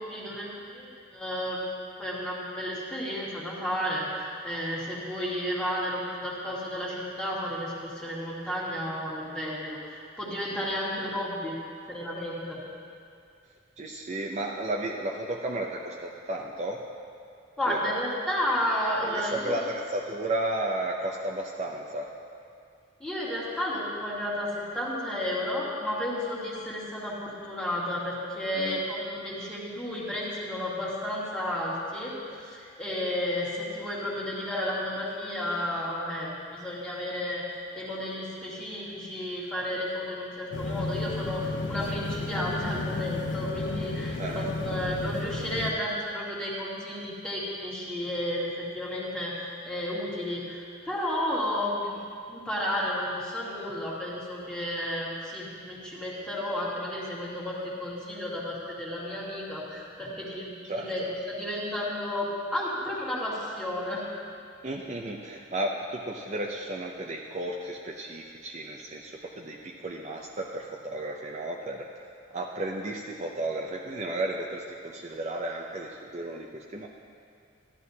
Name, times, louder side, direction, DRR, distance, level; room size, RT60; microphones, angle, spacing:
voice 1, 0.0-1.6 2.0-11.6 11.9-12.6 17.6-19.6 23.0-37.5 37.7-52.0 52.3-64.1, left 1 dB, 5° left, -7 dB, 1.9 m, -32 dB
voice 2, 13.8-16.8 17.7-18.0 19.0-22.1 28.5-28.8 44.1-44.5 60.7-61.1 64.6-71.9 72.3-76.9, right 1 dB, 35° right, -1 dB, 0.5 m, -33 dB
sound 1, 40.5-45.7, left 3 dB, 70° left, 0.6 m, -33 dB
14.0 x 11.0 x 2.8 m, 2.3 s
head